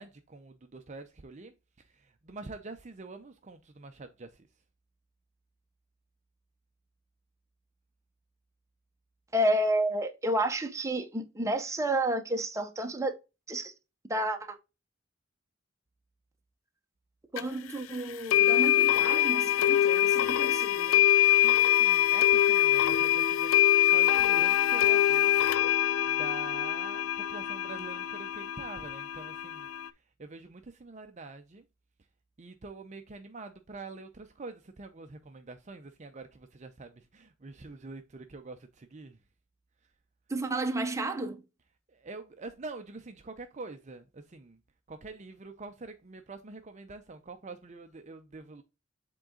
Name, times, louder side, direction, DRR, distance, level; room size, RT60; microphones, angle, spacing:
voice 1, 0.0-4.5 21.4-23.5 23.9-25.7 26.1-29.7 30.2-31.6 32.4-39.2 41.9-44.6 44.9-48.6, right 3 dB, 35° right, 0.6 m, -45 dB
voice 2, 9.3-13.1 13.5-13.7 14.1-14.6 17.3-21.0 40.3-41.4, right 1 dB, 15° right, 0.9 m, -31 dB
sound 1, 17.4-17.5 18.3-29.9, left 12 dB, 85° left, 0.4 m, -24 dB
7.5 x 3.8 x 3.7 m
head